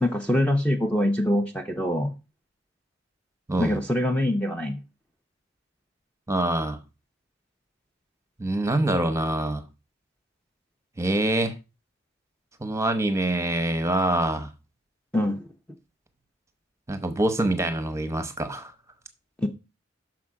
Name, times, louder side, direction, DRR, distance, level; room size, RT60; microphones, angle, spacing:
voice 1, 0.0-2.1 3.6-4.8 15.1-15.4 19.4-19.5, left 1 dB, 5° left, 0.6 m, -24 dB
voice 2, 6.3-6.8 8.4-9.6 11.0-11.5 12.6-14.5 16.9-18.7, right 1 dB, 15° right, 0.9 m, -25 dB
6.1 x 5.6 x 4.9 m
head